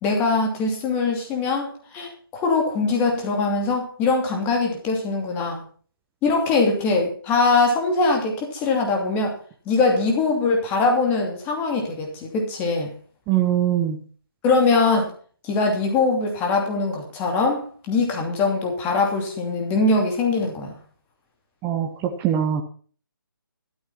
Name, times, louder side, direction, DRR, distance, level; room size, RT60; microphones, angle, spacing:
voice 1, 0.0-5.6 6.2-9.4 9.7-12.9 14.4-15.1 15.4-20.7, left 3 dB, 15° left, 2 dB, 2.8 m, -22 dB
voice 2, 13.3-14.0 21.6-22.6, right 10 dB, 15° right, 4 dB, 0.8 m, -22 dB
13.0 x 8.8 x 5.8 m, 0.44 s
figure-of-eight pair, 150°, 12 cm